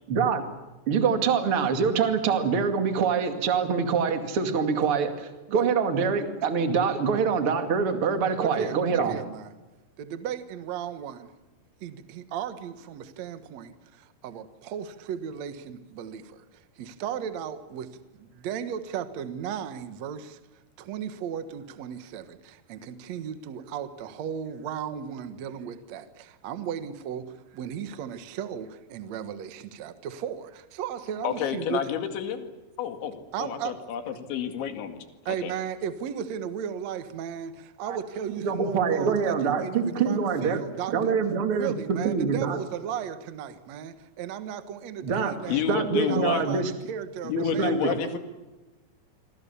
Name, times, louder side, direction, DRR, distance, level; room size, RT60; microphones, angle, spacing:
voice 1, 0.1-0.4 0.9-9.2 37.9-38.0 38.4-40.6 40.9-42.6 45.0-45.4 45.7-46.7 47.4-47.9, right 6 dB, 40° right, 6 dB, 2.4 m, -25 dB
voice 2, 8.4-9.5 10.0-11.3 11.8-17.9 18.2-20.4 20.8-31.8 33.3-33.7 34.1-34.2 35.2-41.1 41.5-48.2, right 8 dB, 70° right, 10 dB, 1.7 m, -35 dB
voice 3, 31.2-32.5 32.8-35.5 45.5-46.5 47.2-48.2, left 8 dB, 80° left, 7 dB, 4.5 m, -30 dB
27.5 x 24.0 x 7.0 m, 1.1 s
omnidirectional pair, 5.2 m